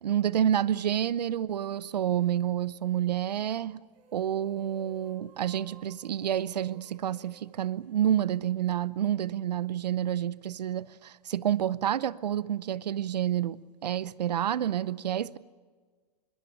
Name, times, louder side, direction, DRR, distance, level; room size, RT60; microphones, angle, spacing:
voice 1, 0.0-3.8 4.1-15.4, right 10 dB, 85° right, 0.7 m, -29 dB
sound 1, 3.8-8.6, right 3 dB, 55° right, 7.6 m, -56 dB
22.5 x 20.0 x 9.1 m
hypercardioid pair, 115°, 20 cm